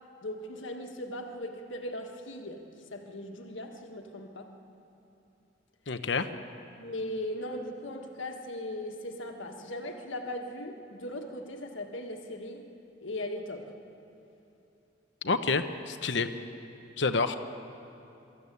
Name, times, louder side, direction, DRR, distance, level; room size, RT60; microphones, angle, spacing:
voice 1, 0.2-4.5 6.8-12.7 13.0-13.7, left 1 dB, 80° left, 3 dB, 1.6 m, -38 dB
voice 2, 5.9-6.3 15.2-16.3 17.0-17.4, left 4 dB, 65° left, 9 dB, 0.9 m, -28 dB
23.5 x 14.0 x 8.5 m, 2.9 s
head